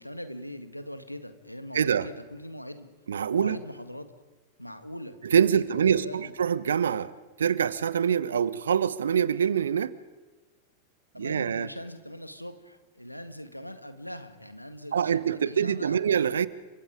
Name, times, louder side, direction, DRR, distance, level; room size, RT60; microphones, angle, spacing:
voice 1, 0.0-2.9 3.3-4.1 4.6-5.2 5.5-6.3 11.1-16.0, equal, 90° left, 10 dB, 1.9 m, -41 dB
voice 2, 1.7-2.1 3.1-3.6 5.2-9.9 11.2-11.7 14.9-16.5, right 8 dB, 65° right, 18 dB, 1.1 m, -25 dB
30.0 x 25.0 x 5.1 m, 1.2 s
figure-of-eight pair, 90°, 0 cm